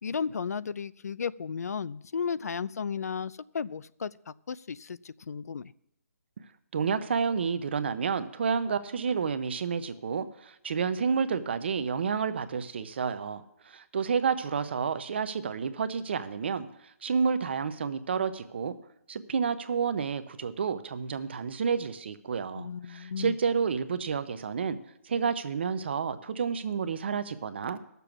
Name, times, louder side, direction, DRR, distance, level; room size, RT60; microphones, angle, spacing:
voice 1, 0.0-5.7 22.6-23.4, left 6 dB, 75° left, 19 dB, 0.4 m, -34 dB
voice 2, 6.7-18.8 19.1-24.8 25.0-27.8, right 6 dB, 45° right, 12 dB, 0.7 m, -30 dB
15.0 x 6.9 x 6.0 m, 0.78 s
hypercardioid pair, 170°, 9 cm